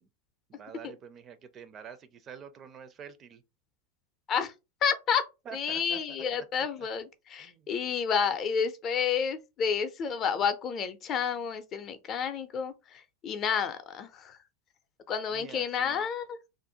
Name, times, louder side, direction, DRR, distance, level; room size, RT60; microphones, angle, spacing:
voice 1, 0.5-3.4 5.5-6.9 7.4-7.7 15.3-16.1, right 7 dB, 35° right, 0.4 m, -47 dB
voice 2, 4.8-5.2 5.5-14.4 15.1-16.4, left 7 dB, 40° left, 0.5 m, -30 dB
2.5 x 2.1 x 2.8 m
hypercardioid pair, 90°, 0 cm